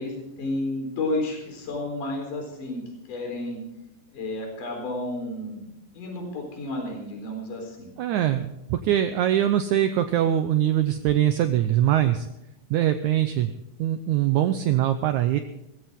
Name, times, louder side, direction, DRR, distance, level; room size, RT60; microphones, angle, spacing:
voice 1, 0.0-3.6 4.1-5.7 5.9-7.9, left 2 dB, 60° left, 2 dB, 5.5 m, -31 dB
voice 2, 8.0-12.3 12.7-15.4, right 11 dB, 75° right, 8 dB, 1.8 m, -23 dB
19.0 x 15.0 x 3.7 m, 0.88 s
omnidirectional pair, 4.3 m